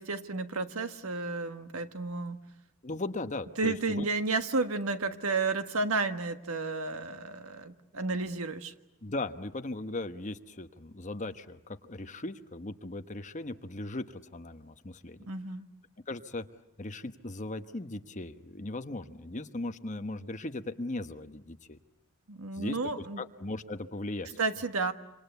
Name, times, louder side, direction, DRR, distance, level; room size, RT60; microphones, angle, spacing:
voice 1, 0.0-2.4 3.6-8.7 15.3-15.7 22.3-23.2 24.4-24.9, right 3 dB, 85° right, 9 dB, 1.5 m, -32 dB
voice 2, 2.8-4.1 9.0-14.0 14.3-15.3 16.1-16.4 16.8-21.8 22.5-24.4, left 2 dB, 35° left, 9 dB, 1.1 m, -38 dB
26.5 x 26.5 x 8.2 m, 0.87 s
head